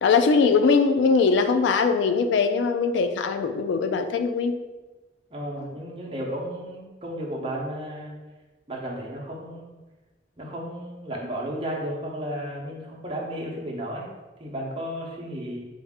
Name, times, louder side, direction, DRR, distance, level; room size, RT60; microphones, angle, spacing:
voice 1, 0.0-4.5, left 5 dB, 85° left, 8 dB, 0.3 m, -21 dB
voice 2, 5.3-8.1 8.7-9.8 10.4-14.1 14.4-15.6, equal, 30° right, -3 dB, 0.7 m, -33 dB
4.0 x 2.4 x 3.5 m, 1.2 s
head